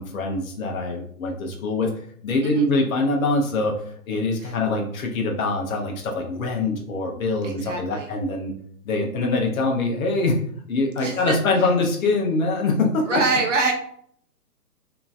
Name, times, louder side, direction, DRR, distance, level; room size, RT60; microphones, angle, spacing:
voice 1, 0.0-1.9 2.2-8.5 8.9-10.4 10.7-13.2, left 2 dB, 60° left, 1 dB, 0.7 m, -24 dB
voice 2, 7.4-8.1 11.0-11.4 13.1-13.7, right 3 dB, 50° right, 3 dB, 0.7 m, -25 dB
2.9 x 2.5 x 2.4 m, 0.62 s
figure-of-eight pair, 135°, 48 cm